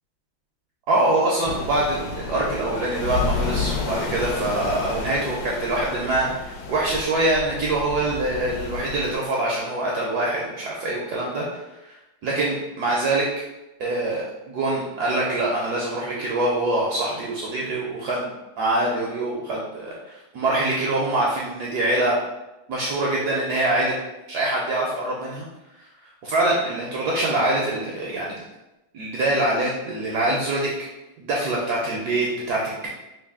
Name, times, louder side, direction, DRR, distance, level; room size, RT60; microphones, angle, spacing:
voice 1, 0.9-12.0 12.2-13.3 13.8-22.2 22.7-23.9 24.3-25.5 25.8-25.9 26.2-28.4 28.9-30.7 31.2-32.9, right 2 dB, 75° right, -3 dB, 0.9 m, -24 dB
Waves crashing in tunnel, 1.4-9.1, left 4 dB, 75° left, 1.2 m, -31 dB
3.2 x 2.5 x 3.5 m, 0.99 s
omnidirectional pair, 2.2 m